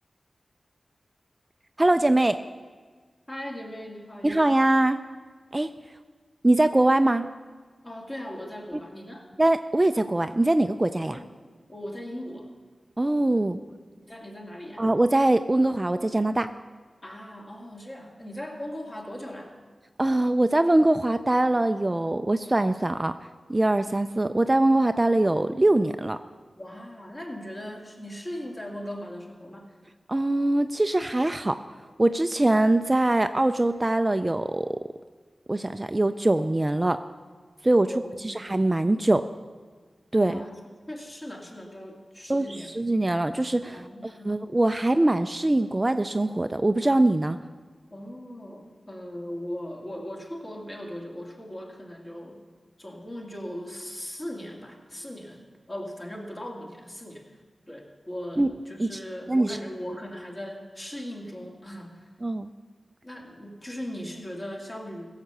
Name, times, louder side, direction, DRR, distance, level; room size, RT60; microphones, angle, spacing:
voice 1, 1.8-2.4 4.2-5.0 5.5-5.7 6.4-7.3 9.4-11.2 13.0-13.6 14.8-16.5 20.0-23.1 23.5-26.2 30.1-34.8 35.5-37.0 37.6-37.9 38.2-39.2 40.1-40.4 42.3-47.4 58.4-58.5 58.8-59.0 59.3-59.6 62.2-62.5, right 1 dB, 25° right, 9 dB, 0.4 m, -23 dB
voice 2, 3.3-4.5 7.8-9.3 11.1-11.3 11.7-12.5 14.0-14.8 17.0-19.6 26.6-29.8 37.9-38.4 40.1-40.5 40.9-42.7 43.7-44.3 47.9-52.4 52.8-55.4 55.7-57.3 57.7-62.1 63.0-65.1, equal, 30° left, 0 dB, 2.3 m, -38 dB
16.0 x 7.3 x 6.7 m, 1.5 s
wide cardioid pair, 80°, 0 cm